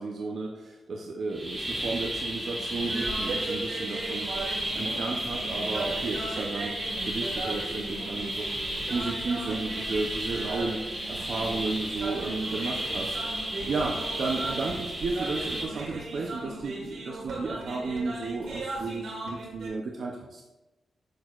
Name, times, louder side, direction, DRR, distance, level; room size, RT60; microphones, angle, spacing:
voice 1, 0.0-4.3 4.7-6.8 7.0-8.5 8.9-10.8 11.1-20.4, right 3 dB, 55° right, 0 dB, 0.6 m, -33 dB
sound 1, 1.3-15.6, right 1 dB, 10° right, 1.8 m, -33 dB
sound 2, 2.9-19.7, right 2 dB, 90° right, 1.5 m, -38 dB
6.5 x 6.1 x 2.4 m, 1.0 s
wide cardioid pair, 150°, 0 cm